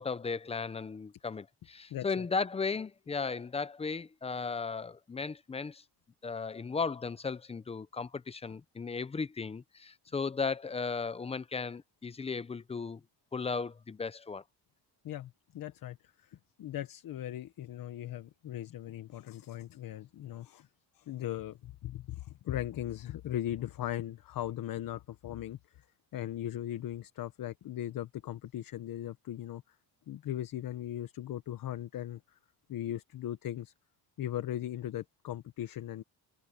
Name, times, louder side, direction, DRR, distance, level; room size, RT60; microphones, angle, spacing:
voice 1, 0.0-5.8 6.2-13.0 13.3-14.4, left 4 dB, 15° left, 0.4 m, -36 dB
voice 2, 1.9-2.2 15.0-20.7 20.9-25.9 26.1-29.8 30.1-32.4 32.7-33.7 34.2-36.0, left 12 dB, 55° left, 1.0 m, -38 dB
cardioid pair, 155°, 41 cm